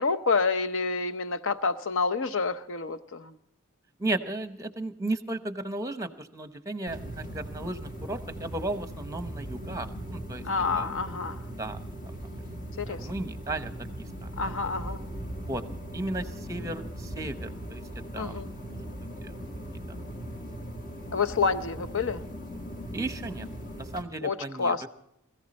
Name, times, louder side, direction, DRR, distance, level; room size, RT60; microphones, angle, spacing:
voice 1, 0.0-3.3 10.4-11.4 12.8-13.0 14.4-15.0 18.2-18.5 21.1-22.2 24.2-24.9, left 4 dB, 65° left, 9 dB, 0.8 m, -28 dB
voice 2, 4.0-10.4 10.7-10.9 11.6-11.8 12.0-12.3 12.9-13.7 14.2-14.3 15.5-15.6 15.9-17.8 18.1-18.4 18.7-18.8 19.2-19.3 19.9-20.0 22.9-23.5 23.8-24.9, right 2 dB, 15° right, 10 dB, 0.9 m, -35 dB
sound 1, 6.9-24.0, right 1 dB, 40° left, 1.9 m, -39 dB
21.0 x 14.5 x 4.2 m, 0.80 s
head